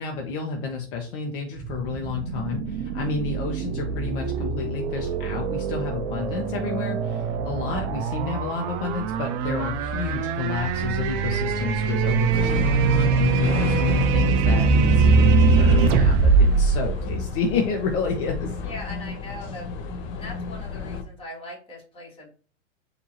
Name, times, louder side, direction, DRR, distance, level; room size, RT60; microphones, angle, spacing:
voice 1, 0.0-16.2 16.6-18.5, left 5 dB, 50° left, 1 dB, 1.0 m, -30 dB
sound 1, 1.6-17.8, right 4 dB, 25° right, 0.3 m, -22 dB
sound 2, 12.3-21.0, left 5 dB, 35° left, 0.7 m, -32 dB
voice 2, 18.6-19.7 20.1-22.3, left 1 dB, 15° left, -3 dB, 2.0 m, -40 dB
4.4 x 2.8 x 3.0 m, 0.40 s
hypercardioid pair, 110°, 36 cm